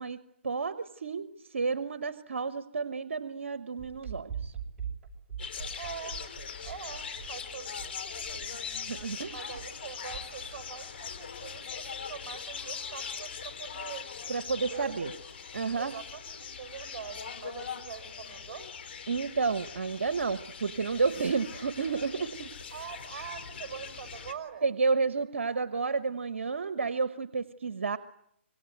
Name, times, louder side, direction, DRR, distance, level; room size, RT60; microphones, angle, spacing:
voice 1, 0.0-4.5 8.5-9.3 14.3-15.1 15.5-15.9 19.1-22.5 24.6-28.0, right 4 dB, 75° right, 11 dB, 1.2 m, -31 dB
sound 1, 3.8-10.6, right 7 dB, 20° right, 6.8 m, -42 dB
sound 2, 5.4-24.3, left 6 dB, 55° left, 3.5 m, -41 dB
voice 2, 5.8-6.2 6.6-8.7 9.3-14.1 14.5-15.0 15.7-18.7 22.7-24.7, right 7 dB, 35° right, 5 dB, 7.0 m, -44 dB
26.0 x 25.0 x 9.2 m, 0.79 s
hypercardioid pair, 145°, 7 cm